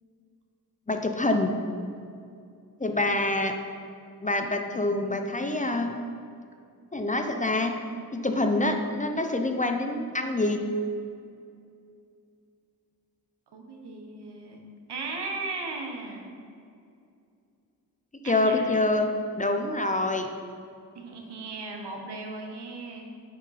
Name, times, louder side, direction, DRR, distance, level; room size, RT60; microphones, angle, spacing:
voice 1, 0.9-1.6 2.8-3.5 4.2-6.0 6.9-7.7 8.1-10.6 18.2-19.1 19.4-20.3, left 2 dB, 20° left, 4 dB, 0.6 m, -26 dB
voice 2, 13.5-14.6 14.9-16.2 18.2-18.9 20.9-23.1, right 3 dB, 80° right, 1 dB, 1.1 m, -37 dB
9.4 x 3.6 x 4.2 m, 2.4 s
cardioid pair, 45°, 40 cm